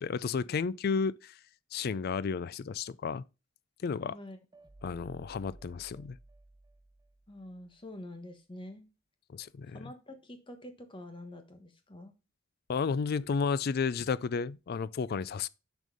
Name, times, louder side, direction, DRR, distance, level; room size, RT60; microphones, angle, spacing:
voice 1, 0.0-1.4 1.7-3.2 3.8-4.2 4.8-6.2 9.3-9.8 12.7-15.5, left 5 dB, 45° left, 0.3 m, -32 dB
sound 1, 4.5-7.7, right 2 dB, 20° right, 0.5 m, -55 dB
voice 2, 7.3-8.8 9.7-12.1, left 1 dB, 25° left, 1.1 m, -46 dB
6.3 x 5.3 x 5.3 m
head